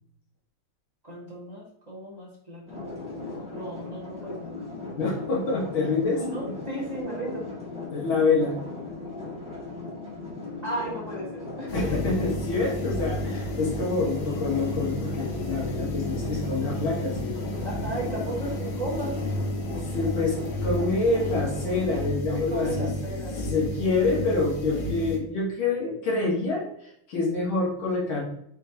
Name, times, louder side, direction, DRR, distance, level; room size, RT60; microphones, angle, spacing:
voice 1, 1.0-4.5 6.2-7.4 10.6-11.9 17.6-19.2 22.3-23.9, right 1 dB, 20° right, -6 dB, 2.1 m, -35 dB
sound 1, 2.7-22.1, left 3 dB, 5° right, 1.8 m, -38 dB
voice 2, 5.0-6.2 7.9-8.6 11.7-17.9 19.7-22.9 23.3-28.2, left 3 dB, 70° left, -4 dB, 2.7 m, -27 dB
sound 2, 11.7-25.2, left 1 dB, 55° left, 1.6 m, -32 dB
7.3 x 4.4 x 2.9 m, 0.72 s
omnidirectional pair, 2.3 m